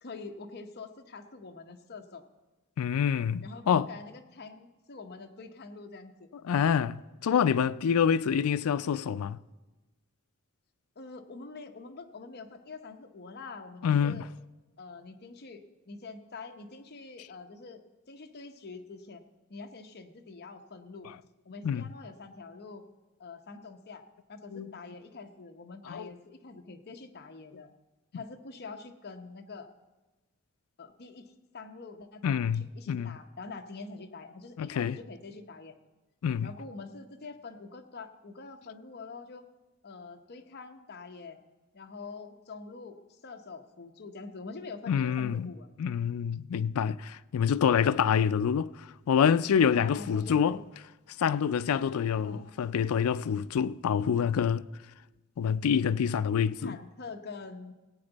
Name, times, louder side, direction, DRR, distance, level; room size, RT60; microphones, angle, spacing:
voice 1, 0.0-2.2 3.4-6.3 11.0-14.3 14.8-17.8 18.1-19.2 19.5-21.1 21.4-22.8 23.2-24.0 24.3-27.7 28.1-29.7 30.8-35.8 36.4-39.5 39.8-41.5 41.7-45.7 49.6-50.6 51.7-52.5 56.6-57.7, left 4 dB, 50° left, 0.9 m, -45 dB
voice 2, 2.8-3.9 6.4-9.4 13.8-14.2 21.6-21.8 24.5-24.7 25.9-26.1 32.2-33.1 34.6-35.0 36.2-36.5 44.9-45.5 45.8-48.7 49.1-50.6 51.2-54.7 55.4-56.8, left 7 dB, 85° left, 0.4 m, -26 dB
17.0 x 8.9 x 4.0 m
head